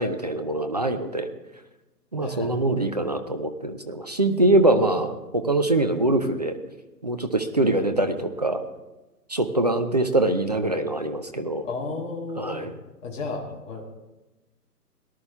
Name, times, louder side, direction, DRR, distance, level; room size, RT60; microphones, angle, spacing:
voice 1, 0.0-1.3 2.1-6.6 7.0-8.6 9.3-11.7 12.4-12.7, right 2 dB, 30° right, 7 dB, 0.4 m, -23 dB
voice 2, 2.2-2.6 4.2-4.9 11.6-12.7 13.0-13.8, left 3 dB, 15° left, -2 dB, 1.5 m, -34 dB
18.5 x 11.0 x 3.4 m, 1.1 s
hypercardioid pair, 145°, 47 cm